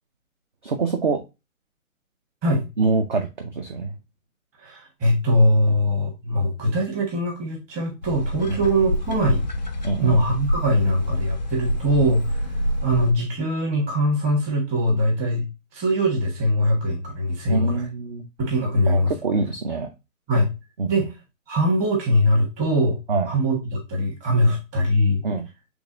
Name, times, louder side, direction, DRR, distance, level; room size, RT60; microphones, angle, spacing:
voice 1, 0.6-1.2 2.8-3.9 5.7-5.8 8.5-8.6 9.8-10.2 17.5-18.2 18.9-19.9 20.8-20.9 23.1-23.3 24.5-24.6 25.2-25.5, right 4 dB, 35° right, 4 dB, 0.6 m, -25 dB
voice 2, 4.6-9.4 10.0-12.3 12.8-15.4 15.7-17.8 18.4-19.1 20.3-20.5 20.9-21.1 21.5-23.0 23.2-25.2, equal, 15° right, 0 dB, 1.3 m, -21 dB
sound 1, 8.0-13.1, left 1 dB, 35° left, 0.4 m, -27 dB
6.3 x 3.5 x 2.5 m, 0.25 s
figure-of-eight pair, 145°, 43 cm